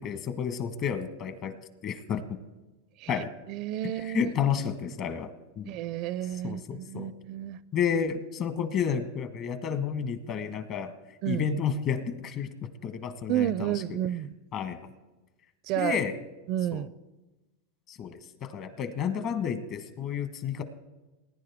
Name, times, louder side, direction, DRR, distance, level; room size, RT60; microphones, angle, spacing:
voice 1, 0.0-1.5 1.8-2.4 3.1-3.3 4.0-5.7 6.4-7.1 7.7-10.9 11.3-12.5 12.8-13.8 14.5-14.8 15.8-16.2 16.7-16.8 17.9-20.6, left 7 dB, 45° left, 1.3 m, -31 dB
voice 2, 3.0-4.3 5.7-7.6 11.2-11.4 13.3-14.3 15.6-16.0 16.5-16.9, right 12 dB, 50° right, 0.4 m, -31 dB
19.5 x 10.5 x 3.6 m
hypercardioid pair, 120°, 0 cm